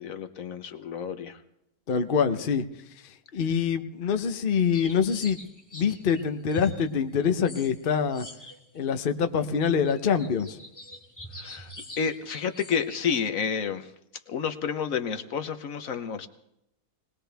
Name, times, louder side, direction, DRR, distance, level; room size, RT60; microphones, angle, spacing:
voice 1, 0.0-1.4 4.0-4.2 11.3-13.9 14.3-16.3, left 7 dB, 65° left, 9 dB, 1.2 m, -30 dB
voice 2, 1.9-2.6 3.3-5.4 5.7-8.3 8.7-10.6, left 6 dB, 45° left, 8 dB, 0.8 m, -25 dB
sound 1, 4.7-8.9 9.2-9.3 9.8-13.1, equal, 10° left, 2.5 m, -44 dB
21.0 x 19.5 x 3.4 m, 0.82 s
omnidirectional pair, 1.6 m